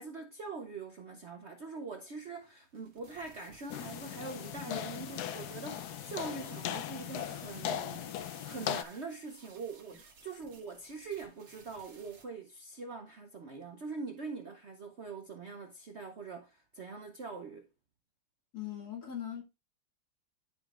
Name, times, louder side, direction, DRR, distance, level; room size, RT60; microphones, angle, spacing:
voice 1, 0.0-17.7, right 4 dB, 65° right, 0.6 m, -43 dB
sound 1, 2.2-12.2, right 5 dB, 80° right, 2.5 m, -58 dB
sound 2, 3.7-8.8, left 10 dB, 70° left, 1.0 m, -38 dB
voice 2, 4.7-5.2 9.9-10.0 18.5-19.4, left 10 dB, 50° left, 2.4 m, -41 dB
12.0 x 5.1 x 2.4 m
omnidirectional pair, 2.2 m